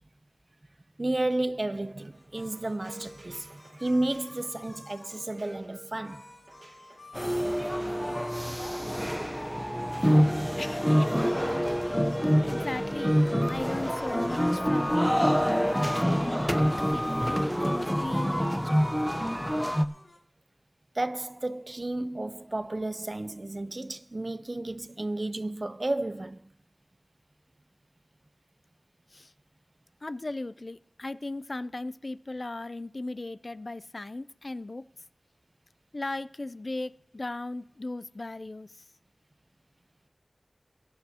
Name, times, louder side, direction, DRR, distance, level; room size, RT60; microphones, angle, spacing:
voice 1, 1.0-6.3 20.9-26.4, right 2 dB, 45° right, 0.5 m, -32 dB
sound 1, 2.1-5.5 6.0-8.6 8.9-16.4 16.7-18.3 18.6-20.2, left 2 dB, 85° left, 5.6 m, -54 dB
sound 2, 2.1-17.4, right 2 dB, 90° right, 1.4 m, -52 dB
sound 3, 7.1-19.9, equal, ahead, 0.6 m, -26 dB
voice 2, 10.6-11.2 12.5-13.2 13.5-19.0 29.1-29.3 30.0-34.8 35.9-38.9, left 2 dB, 55° left, 0.4 m, -37 dB
21.5 x 10.5 x 2.8 m
wide cardioid pair, 55°, 0 cm